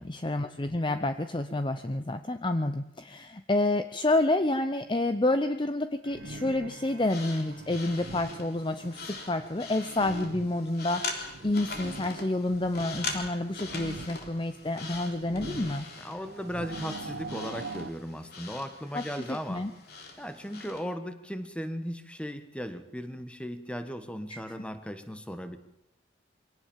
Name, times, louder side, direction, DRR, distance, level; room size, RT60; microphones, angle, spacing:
voice 1, 0.0-11.0 11.4-15.9 18.9-19.0 19.3-19.7 24.3-24.4, left 2 dB, 25° left, 9 dB, 0.7 m, -29 dB
sound 1, 6.0-17.9, right 2 dB, 75° right, 1.1 m, -44 dB
sound 2, 7.0-20.9, left 4 dB, 55° left, 3.5 m, -42 dB
voice 2, 16.0-19.7 20.2-25.6, equal, 5° left, 9 dB, 1.4 m, -37 dB
23.5 x 17.5 x 7.4 m, 0.87 s
head